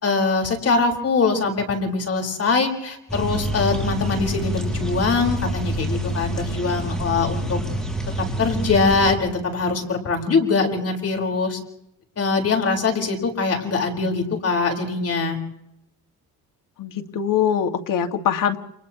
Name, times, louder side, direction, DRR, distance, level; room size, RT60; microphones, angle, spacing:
voice 1, 0.0-7.6 8.4-11.6 12.2-15.4, left 4 dB, 40° left, 2 dB, 4.8 m, -22 dB
sound 1, 3.1-9.1, equal, ahead, 7.6 m, -27 dB
voice 2, 16.8-18.6, left 8 dB, 60° left, 6 dB, 2.1 m, -22 dB
30.0 x 28.0 x 3.1 m, 0.80 s
cardioid pair, 105°, 36 cm